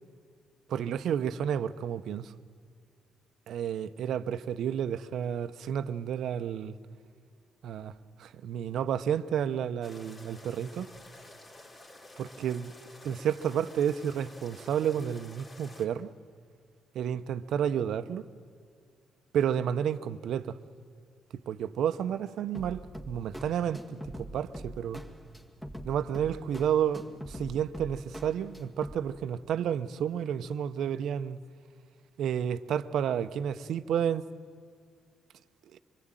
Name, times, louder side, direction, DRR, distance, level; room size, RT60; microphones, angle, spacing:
voice 1, 0.7-2.3 3.5-6.8 7.6-7.9 8.2-10.9 12.2-12.7 13.0-16.1 16.9-18.3 19.3-20.6 21.5-25.0 25.8-31.4 32.2-34.2 35.7-35.8, right 9 dB, 75° right, 0.9 m, -31 dB
sound 1, 9.8-15.9, left 2 dB, 35° left, 3.7 m, -51 dB
sound 2, 22.5-28.9, equal, 10° left, 2.1 m, -44 dB
25.0 x 22.5 x 9.2 m
cardioid pair, 90°, 0 cm